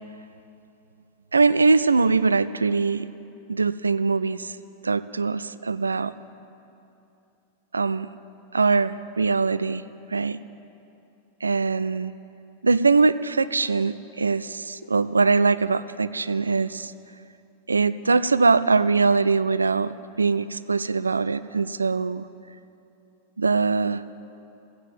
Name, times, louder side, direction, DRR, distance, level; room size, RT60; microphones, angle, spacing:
voice 1, 1.3-3.1 3.5-4.6 4.8-6.1 7.7-8.1 8.5-9.8 10.1-10.4 11.4-12.1 12.6-16.9 17.7-22.3 23.4-24.0, right 4 dB, 75° right, 16 dB, 0.3 m, -22 dB
16.0 x 9.0 x 7.5 m, 2.8 s
figure-of-eight pair, 90°, 0 cm